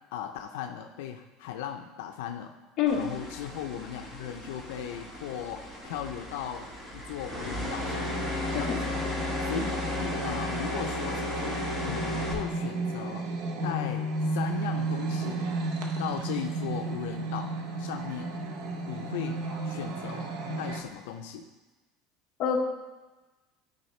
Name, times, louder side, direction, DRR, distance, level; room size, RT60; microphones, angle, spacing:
voice 1, 0.1-2.5 2.9-8.9 9.4-13.3 13.6-15.5 16.0-17.5 17.8-18.4 18.9-20.3 20.6-21.5, left 9 dB, 80° left, 5 dB, 0.5 m, -37 dB
voice 2, 2.8-3.0 8.5-8.8 22.4-22.6, left 7 dB, 35° left, -1 dB, 1.0 m, -26 dB
sound 1, 2.9-12.3, left 1 dB, 10° right, 1.1 m, -34 dB
sound 2, 7.8-20.8, right 2 dB, 55° right, 0.8 m, -33 dB
12.0 x 4.3 x 3.2 m, 1.2 s
cardioid pair, 180°, 0 cm